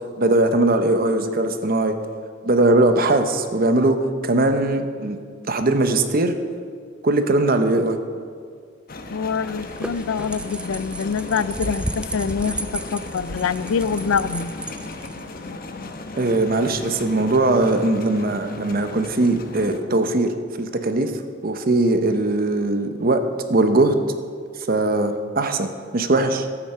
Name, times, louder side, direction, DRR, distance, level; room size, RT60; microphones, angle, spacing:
voice 1, 0.2-1.9 2.4-4.0 4.2-5.2 5.5-6.3 7.0-8.0 16.2-21.1 21.4-23.2 23.5-24.0 24.7-26.5, right 2 dB, 45° right, 8 dB, 0.8 m, -20 dB
sound 1, 8.9-19.8, left 2 dB, 45° left, 0.9 m, -36 dB
voice 2, 9.1-14.5, left 6 dB, 90° left, 16 dB, 0.4 m, -25 dB
sound 2, 9.5-15.5, right 2 dB, 5° right, 0.4 m, -33 dB
12.5 x 8.8 x 5.6 m, 2.1 s
head